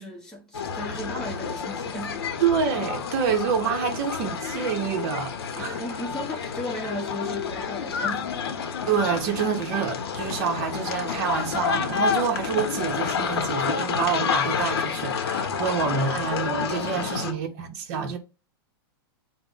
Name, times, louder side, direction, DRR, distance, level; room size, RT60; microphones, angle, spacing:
voice 1, 0.0-2.3 5.6-8.3 17.0-17.4 17.9-18.2, equal, 5° left, 0.9 m, -36 dB
sound 1, 0.5-17.3, left 6 dB, 80° left, 0.7 m, -29 dB
voice 2, 2.4-5.8 8.9-18.2, right 7 dB, 40° right, 0.8 m, -27 dB
4.6 x 2.1 x 3.8 m
supercardioid pair, 165°, 13 cm